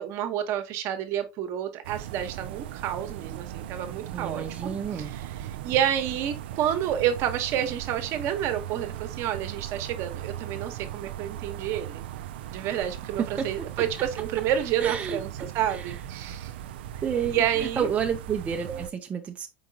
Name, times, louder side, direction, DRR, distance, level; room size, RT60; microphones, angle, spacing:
voice 1, 0.0-12.0 12.5-16.5 17.3-17.9, right 10 dB, 55° right, 0.9 m, -29 dB
sound 1, 1.8-18.9, right 12 dB, 80° right, 0.3 m, -38 dB
voice 2, 4.1-5.1 13.2-13.7 14.8-15.9 17.0-19.5, right 7 dB, 25° right, 0.5 m, -30 dB
4.7 x 3.7 x 2.7 m
supercardioid pair, 110°, 6 cm